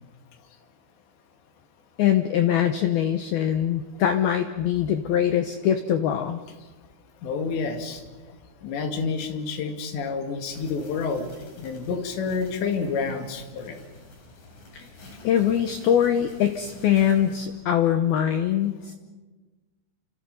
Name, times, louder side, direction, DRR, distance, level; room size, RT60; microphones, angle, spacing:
voice 1, 2.0-6.4 14.7-14.9 15.2-18.9, left 10 dB, 85° left, 7 dB, 2.2 m, -23 dB
voice 2, 7.2-8.0 8.6-11.3 11.6-13.8, left 5 dB, 65° left, 5 dB, 4.2 m, -29 dB
sound 1, 10.4-17.5, left 2 dB, 45° left, 5.8 m, -48 dB
29.5 x 27.0 x 5.4 m, 1.2 s
omnidirectional pair, 5.8 m